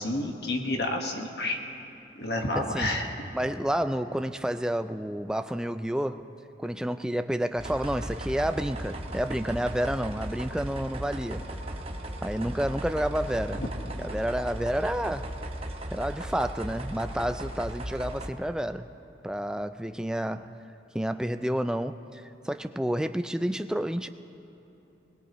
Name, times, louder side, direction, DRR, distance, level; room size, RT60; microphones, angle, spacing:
voice 1, 0.0-1.6 2.2-3.1 13.6-13.7, left 1 dB, 65° left, 3 dB, 1.4 m, -29 dB
voice 2, 2.6-2.9 3.3-6.3 6.6-11.4 12.2-13.6 14.0-15.3 15.9-18.9 19.2-20.6 20.9-24.1, equal, 5° right, 9 dB, 0.3 m, -30 dB
sound 1, 7.6-18.3, right 1 dB, 30° right, 0.9 m, -37 dB
21.5 x 21.0 x 3.0 m, 3.0 s
head